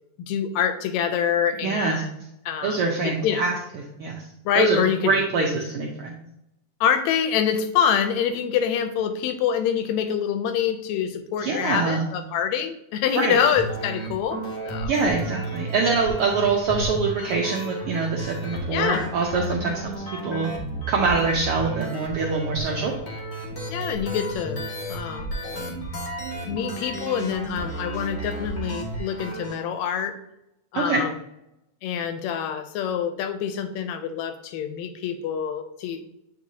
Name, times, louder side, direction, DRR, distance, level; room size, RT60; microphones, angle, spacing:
voice 1, 0.2-2.1 2.5-2.8 3.0-3.5 4.5-5.1 6.8-14.9 18.7-19.1 23.7-24.6 24.9-25.3 26.5-30.2 30.7-31.1 31.8-36.0, left 8 dB, 80° left, 8 dB, 1.8 m, -25 dB
voice 2, 1.6-2.0 2.6-3.5 4.0-4.2 4.6-4.8 5.0-6.1 11.4-12.0 13.1-13.4 14.8-19.9 20.2-20.5 20.9-22.9 30.7-31.0, right 4 dB, 80° right, -1 dB, 1.3 m, -24 dB
sound 1, 13.6-29.5, right 1 dB, 40° left, 0.9 m, -33 dB
8.3 x 4.5 x 2.7 m, 0.83 s
omnidirectional pair, 3.3 m